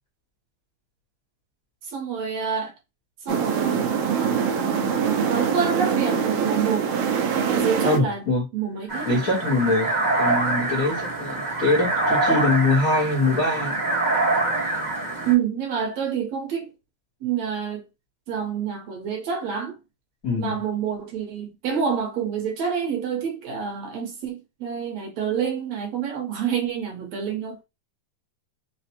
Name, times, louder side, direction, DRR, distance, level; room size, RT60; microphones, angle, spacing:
voice 1, 1.8-2.7 3.2-3.9 4.5-7.0 7.3-8.3 8.5-9.2 15.2-16.7 17.2-17.9 18.3-19.8 20.4-27.6, right 7 dB, 70° right, 2.0 m, -28 dB
sound 1, 3.3-8.0, right 7 dB, 85° right, 1.3 m, -23 dB
voice 2, 7.8-8.4 9.1-13.8 20.2-20.5, left 2 dB, 75° left, 0.8 m, -23 dB
sound 2, 8.9-15.3, right 2 dB, 50° right, 0.5 m, -25 dB
4.9 x 2.1 x 2.8 m
omnidirectional pair, 3.5 m